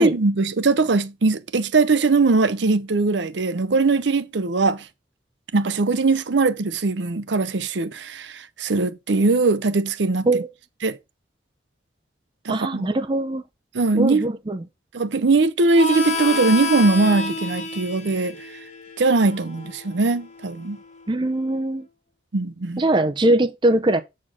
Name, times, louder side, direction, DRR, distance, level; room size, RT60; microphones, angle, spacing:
voice 1, 0.0-4.9 5.5-10.3 10.8-11.0 12.4-12.9 13.7-14.3 14.9-18.4 19.0-20.8 22.3-22.8, right 3 dB, 75° right, 0.7 m, -20 dB
voice 2, 12.5-13.4 14.0-14.7 21.1-21.9 22.8-24.0, right 1 dB, 25° right, 0.5 m, -21 dB
Harmonica, 15.7-21.0, left 3 dB, 40° left, 1.2 m, -30 dB
7.6 x 4.2 x 4.9 m
head